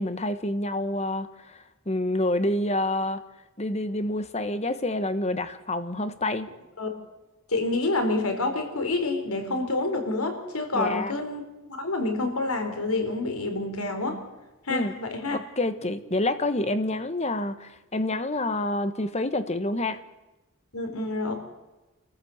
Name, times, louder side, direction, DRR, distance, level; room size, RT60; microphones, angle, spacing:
voice 1, 0.0-3.2 3.6-6.5 10.7-11.1 14.7-14.9 15.3-20.0, left 1 dB, 30° left, 11 dB, 1.4 m, -28 dB
voice 2, 7.5-11.4 11.7-14.2 14.6-15.4 20.7-21.3, left 2 dB, 85° left, 5 dB, 4.5 m, -28 dB
27.5 x 14.5 x 8.1 m, 1.1 s
head